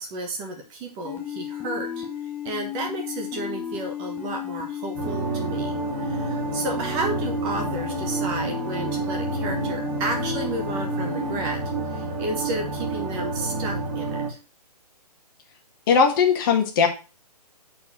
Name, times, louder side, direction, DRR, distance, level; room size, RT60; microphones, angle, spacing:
voice 1, 0.0-2.1 2.4-5.8 6.0-11.6 11.9-14.2, right 2 dB, 20° right, 2 dB, 1.3 m, -32 dB
sound 1, 1.0-11.4, left 8 dB, 10° left, 0.9 m, -34 dB
sound 2, 4.9-14.3, right 3 dB, 35° right, 2.1 m, -29 dB
voice 2, 15.9-16.9, left 6 dB, 30° left, 3 dB, 1.6 m, -19 dB
7.5 x 4.5 x 6.3 m, 0.33 s
figure-of-eight pair, 130°, 21 cm